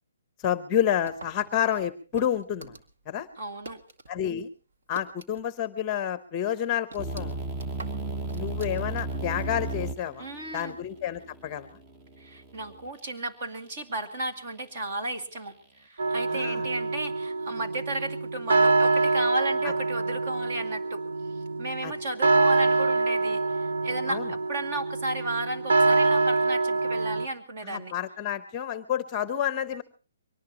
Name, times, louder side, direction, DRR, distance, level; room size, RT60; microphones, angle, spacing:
voice 1, 0.4-2.7 3.1-3.3 4.1-4.5 4.9-7.4 8.3-10.3 10.5-11.7 16.3-16.6 19.6-19.7 21.8-21.9 24.1-24.3 27.6-29.8, left 9 dB, 20° left, 12 dB, 0.8 m, -29 dB
sound 1, 1.0-4.1 4.4-5.7 6.0-6.1 6.5-9.3, right 2 dB, 60° right, 2.0 m, -47 dB
voice 2, 3.4-3.8 10.2-10.8 12.2-15.6 15.8-21.0 21.6-27.9, right 2 dB, 40° right, 4 dB, 2.3 m, -34 dB
sound 2, 7.0-12.9, right 2 dB, 15° right, 0.9 m, -35 dB
sound 3, 16.0-27.3, right 3 dB, 80° right, 0.7 m, -25 dB
23.0 x 19.0 x 3.0 m, 0.35 s
hypercardioid pair, 165°, 0 cm